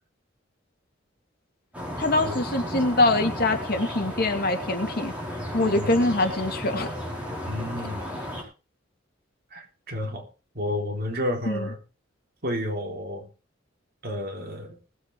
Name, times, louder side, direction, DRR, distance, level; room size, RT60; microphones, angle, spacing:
sound 1, 1.7-8.4, equal, 5° right, 4.9 m, -34 dB
voice 1, 2.0-5.1 5.5-6.9 11.5-11.6, left 2 dB, 50° left, 5 dB, 2.3 m, -24 dB
voice 2, 5.6-6.1 7.5-8.2 9.5-10.3 10.5-11.8 12.4-13.3 14.0-14.8, left 1 dB, 55° right, 2 dB, 3.7 m, -31 dB
20.0 x 8.0 x 4.7 m, 0.34 s
head